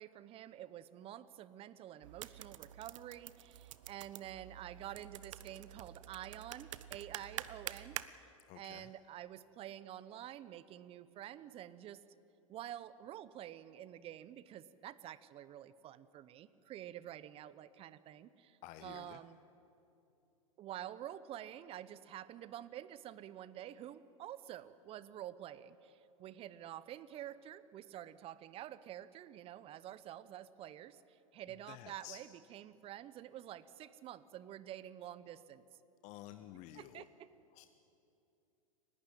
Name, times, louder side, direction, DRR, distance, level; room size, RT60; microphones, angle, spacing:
voice 1, 0.0-8.0 8.5-12.0 12.5-19.4 20.6-35.6 36.7-37.3, right 12 dB, 35° right, 16 dB, 0.9 m, -49 dB
sound 1, 2.0-8.1, right 12 dB, 65° right, 0.8 m, -48 dB
voice 2, 8.5-8.9 18.6-19.2 31.7-32.2 36.0-37.1 37.5-37.7, left 14 dB, 40° left, 10 dB, 0.8 m, -51 dB
29.0 x 12.0 x 8.9 m, 2.8 s
hypercardioid pair, 95°, 18 cm